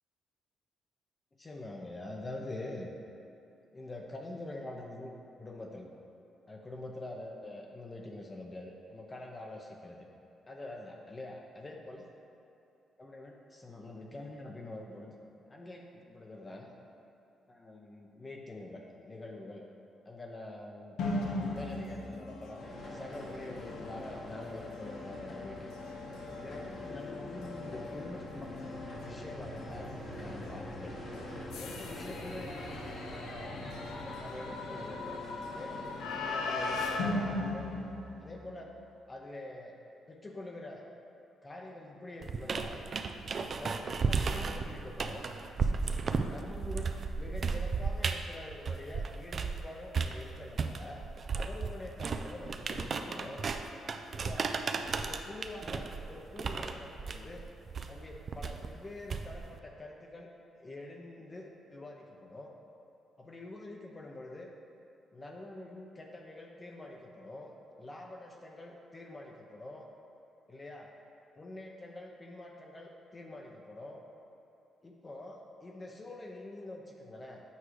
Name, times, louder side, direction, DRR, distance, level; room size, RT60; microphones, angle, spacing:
voice 1, 1.4-2.9 3.7-5.1 5.4-5.9 6.5-10.1 10.5-12.1 13.0-15.2 15.5-16.8 17.5-19.7 20.1-21.0 21.4-25.7 26.4-28.5 29.0-30.9 31.6-32.8 33.3-33.5 34.2-35.2 35.5-37.7 38.2-38.8 39.1-39.8 40.1-40.8 41.4-42.9 43.5-45.2 46.3-46.9 47.2-51.0 51.3-53.4 54.1-54.6 55.0-57.4 57.9-60.3 60.6-62.5 63.2-64.5 65.1-69.9 70.5-70.9 71.3-74.0 74.8-77.4, left 2 dB, 30° left, 0 dB, 0.7 m, -45 dB
sound 1, 21.0-38.7, left 2 dB, 80° left, 0.6 m, -39 dB
sound 2, 22.6-36.9, left 2 dB, 55° left, 1.2 m, -44 dB
sound 3, 42.2-49.6 49.9-59.6, right 4 dB, 50° right, 0.4 m, -34 dB
8.1 x 4.6 x 3.2 m, 2.8 s
supercardioid pair, 70°, 0 cm